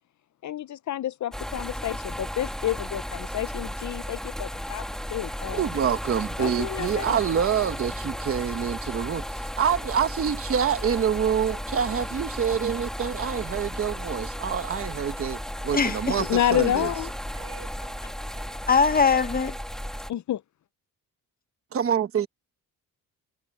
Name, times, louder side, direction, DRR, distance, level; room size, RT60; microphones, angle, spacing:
voice 1, 0.4-4.8 5.1-5.7 6.4-7.2 16.2-17.1 20.1-20.4, left 12 dB, 50° left, 0.6 m, -29 dB
sound 1, 1.3-20.1, equal, ahead, 1.6 m, -34 dB
voice 2, 5.5-16.9 21.7-22.3, right 8 dB, 40° right, 1.0 m, -26 dB
voice 3, 15.7-16.2 18.7-19.6, left 5 dB, 25° left, 0.8 m, -21 dB
voice 4, 16.5-18.6, right 11 dB, 85° right, 4.1 m, -49 dB
wide cardioid pair, 160°, 36 cm